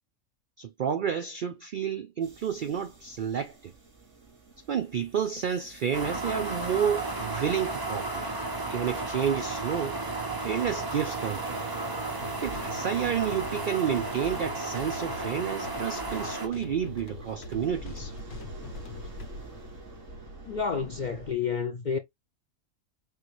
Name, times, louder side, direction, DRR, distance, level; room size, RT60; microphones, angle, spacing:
voice 1, 0.6-3.7 4.7-8.3 8.7-10.0 10.4-11.6 12.4-18.1, right 8 dB, 80° right, 0.4 m, -30 dB
sound 1, 2.2-21.3, right 2 dB, 65° right, 3.1 m, -47 dB
sound 2, 5.9-16.5, right 2 dB, 20° right, 0.8 m, -33 dB
sound 3, 12.2-19.3, left 3 dB, 55° left, 1.1 m, -44 dB
voice 2, 20.5-22.0, left 6 dB, 75° left, 0.4 m, -30 dB
6.4 x 2.3 x 3.1 m
omnidirectional pair, 1.4 m